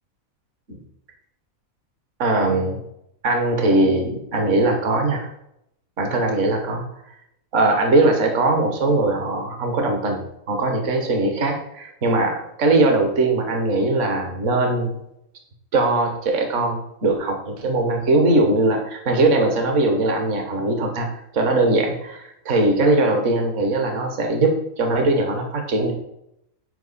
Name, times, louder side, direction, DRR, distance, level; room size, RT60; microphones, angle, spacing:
voice 1, 2.2-2.8 3.2-5.3 6.0-6.8 7.5-15.0 15.7-21.1 21.3-25.9, right 2 dB, 60° right, 3 dB, 1.5 m, -20 dB
8.1 x 5.1 x 4.1 m, 0.79 s
omnidirectional pair, 1.5 m